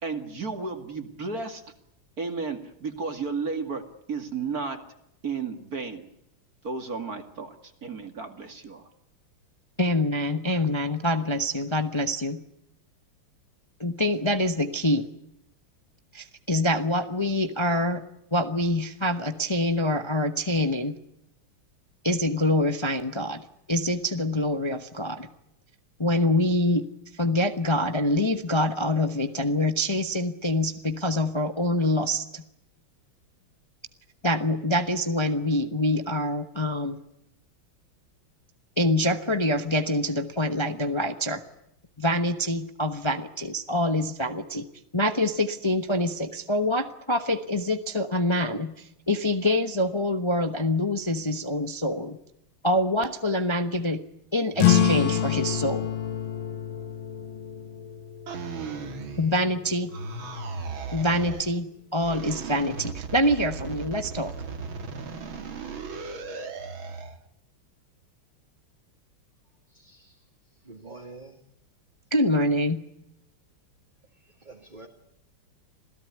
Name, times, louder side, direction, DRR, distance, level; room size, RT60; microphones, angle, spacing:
voice 1, 0.0-1.6 2.2-3.8 4.1-4.8 5.2-6.1 6.6-7.5 7.8-8.9, right 4 dB, 45° right, 7 dB, 2.6 m, -33 dB
voice 2, 9.8-12.4 13.8-15.0 16.1-18.0 18.3-20.9 22.0-25.3 26.0-26.9 27.1-32.4 34.2-37.0 38.8-41.4 42.0-44.6 44.9-52.2 52.6-54.0 54.3-55.9 59.2-59.9 60.9-64.3 72.1-72.8, left 1 dB, 20° left, 8 dB, 0.8 m, -25 dB
sound 1, 54.6-59.6, left 10 dB, 70° left, 2.4 m, -27 dB
sound 2, 58.3-59.6 59.9-61.5 62.0-67.2, right 4 dB, 65° right, 2.9 m, -36 dB
voice 3, 69.7-70.2 70.6-71.4 74.2-74.9, right 3 dB, 20° right, 1 dB, 2.4 m, -46 dB
27.0 x 17.0 x 9.5 m, 0.80 s
omnidirectional pair, 2.3 m